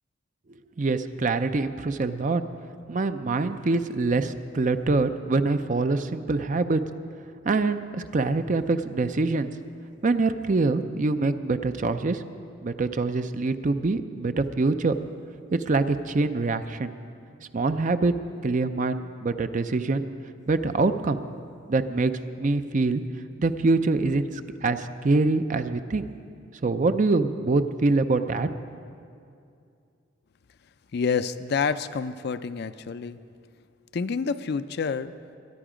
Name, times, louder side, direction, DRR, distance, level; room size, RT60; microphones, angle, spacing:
voice 1, 0.8-2.4 2.9-6.8 7.4-9.5 10.0-12.2 12.6-15.0 15.5-16.9 17.5-18.1 18.4-20.1 20.5-21.2 21.7-22.1 22.4-23.0 23.4-24.3 24.6-26.1 26.6-28.5, right 3 dB, 40° right, 10 dB, 0.5 m, -24 dB
voice 2, 30.9-33.2 33.9-35.1, left 5 dB, 55° left, 12 dB, 0.4 m, -28 dB
22.0 x 10.5 x 5.0 m, 2.4 s
head